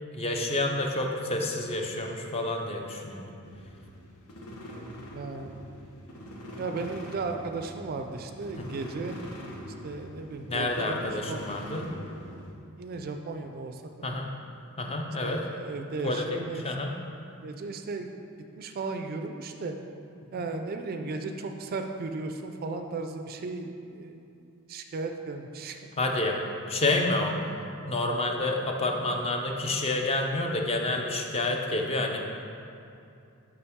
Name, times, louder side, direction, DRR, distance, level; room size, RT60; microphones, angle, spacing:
voice 1, 0.1-3.2 8.6-8.7 10.5-11.9 14.0-14.3 14.8-15.4 16.0-16.9 26.0-26.4 26.7-27.4 27.8-32.2, left 2 dB, 25° left, 2 dB, 0.5 m, -29 dB
sound 1, 3.4-12.5, equal, 80° left, 0.9 m, -43 dB
voice 2, 5.1-5.5 6.6-9.2 9.8-11.4 12.8-13.8 14.1-14.2 15.2-16.7 17.4-18.2 18.6-19.8 20.3-25.8, right 3 dB, 40° right, 5 dB, 0.3 m, -35 dB
6.9 x 5.2 x 3.5 m, 2.6 s
head